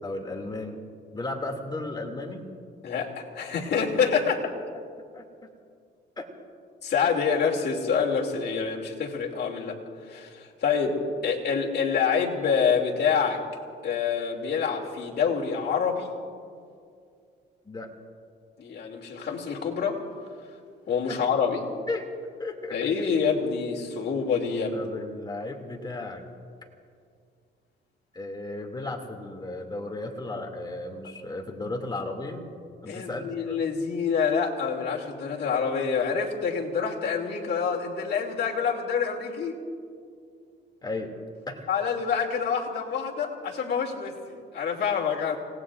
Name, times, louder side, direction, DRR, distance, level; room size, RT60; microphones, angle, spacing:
voice 1, 0.0-0.8 1.1-2.5 4.7-4.8 5.1-5.2 6.2-6.3 17.6-17.9 21.1-21.2 21.9-22.1 22.4-22.8 24.7-26.2 28.1-32.4 32.8-33.6 40.8-41.1 41.5-41.7, left 2 dB, 20° left, 1 dB, 2.5 m, -34 dB
voice 2, 2.8-4.5 6.8-9.8 10.1-13.4 13.8-16.1 18.6-20.0 20.9-21.7 22.7-24.9 32.9-39.6 41.7-45.4, left 6 dB, 55° left, -1 dB, 2.7 m, -27 dB
29.5 x 18.5 x 2.5 m, 2.3 s
cardioid pair, 90°, 20 cm